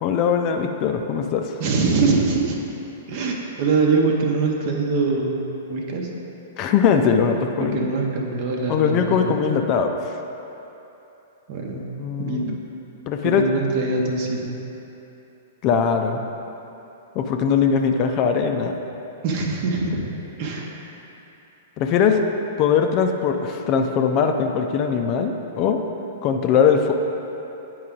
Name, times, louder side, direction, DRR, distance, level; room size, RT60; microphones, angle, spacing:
voice 1, 0.0-1.6 6.6-7.8 8.7-10.2 12.0-12.6 13.1-13.4 15.6-16.2 17.1-18.7 21.8-22.2 22.6-25.8 26.2-26.9, left 6 dB, 35° left, 4 dB, 0.5 m, -21 dB
voice 2, 1.6-2.6 3.1-6.1 7.6-9.4 11.5-11.9 12.2-12.4 13.2-14.5 19.2-20.0 20.4-20.7, right 4 dB, 45° right, 1 dB, 1.0 m, -23 dB
9.6 x 4.6 x 3.7 m, 3.0 s
figure-of-eight pair, 105°, 0 cm